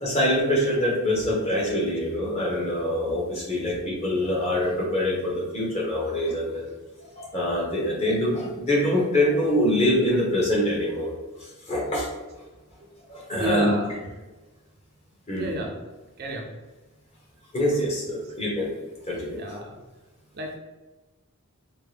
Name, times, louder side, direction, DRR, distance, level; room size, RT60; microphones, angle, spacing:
voice 1, 0.0-6.7 7.2-11.1 11.4-12.1 13.1-13.7 15.3-15.5 17.5-18.7 19.1-19.6, left 1 dB, 30° left, -4 dB, 1.0 m, -25 dB
voice 2, 13.4-13.9 15.3-15.8 16.2-16.5 18.2-18.3 19.4-19.8 20.3-20.6, right 1 dB, 45° right, 1 dB, 0.5 m, -31 dB
4.4 x 2.2 x 3.3 m, 1.1 s
head